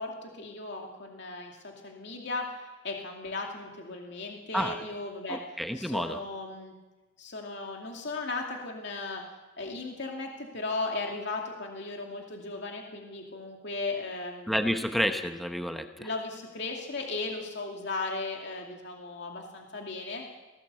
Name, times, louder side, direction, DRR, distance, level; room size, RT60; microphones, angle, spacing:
voice 1, 0.0-5.4 5.7-6.7 7.2-9.2 9.6-14.7 16.0-20.2, left 3 dB, 65° left, 1 dB, 2.6 m, -36 dB
voice 2, 5.3-6.2 14.5-16.1, equal, ahead, 6 dB, 1.0 m, -30 dB
19.5 x 17.0 x 8.3 m, 1.2 s
head